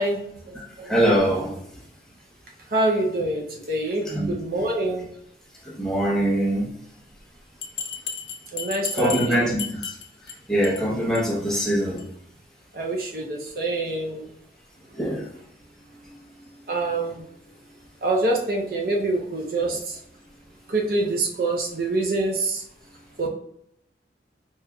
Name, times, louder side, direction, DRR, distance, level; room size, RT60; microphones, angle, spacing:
voice 1, 0.0-0.9 2.7-5.1 8.5-9.4 12.7-14.3 16.7-17.3 18.0-20.0 20.7-22.6 23.2-23.3, right 2 dB, 50° right, 0 dB, 0.6 m, -26 dB
voice 2, 0.5-1.8 4.0-4.3 5.6-6.7 8.9-12.1 14.9-15.4 15.9-16.7 19.6-19.8 22.9-23.3, right 1 dB, 5° left, -4 dB, 0.7 m, -25 dB
Bell, 7.6-10.3 10.6-10.8 11.1-11.2 11.6-11.7 12.0-12.1, left 7 dB, 85° left, 0.6 m, -33 dB
4.7 x 3.0 x 2.3 m, 0.73 s
head